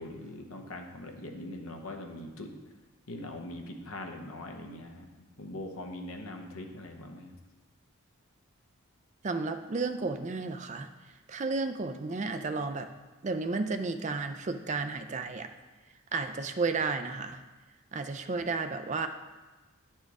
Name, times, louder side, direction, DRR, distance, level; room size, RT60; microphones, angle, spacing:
voice 1, 0.0-2.5 3.1-7.4, left 1 dB, 70° left, 3 dB, 0.8 m, -42 dB
voice 2, 9.2-10.9 11.3-12.9 13.2-15.5 16.1-17.4 17.9-19.1, right 3 dB, 30° right, 8 dB, 0.4 m, -32 dB
10.0 x 4.4 x 4.7 m, 1.2 s
head